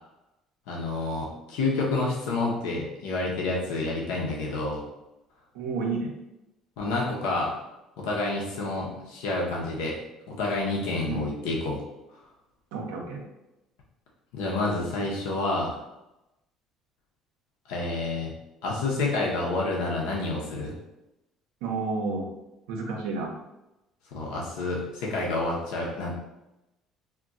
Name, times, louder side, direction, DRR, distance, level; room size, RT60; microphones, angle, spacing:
voice 1, 0.7-4.8 6.8-7.6 8.0-10.0 10.3-11.8 14.3-15.7 17.7-18.3 18.6-20.7 24.1-26.2, left 2 dB, 85° left, -2 dB, 0.6 m, -29 dB
voice 2, 5.5-6.1 11.0-11.3 12.7-13.2 21.6-22.2 22.7-23.3, right 4 dB, 85° right, 0 dB, 0.6 m, -30 dB
2.3 x 2.2 x 3.8 m, 0.94 s
supercardioid pair, 95°, 0 cm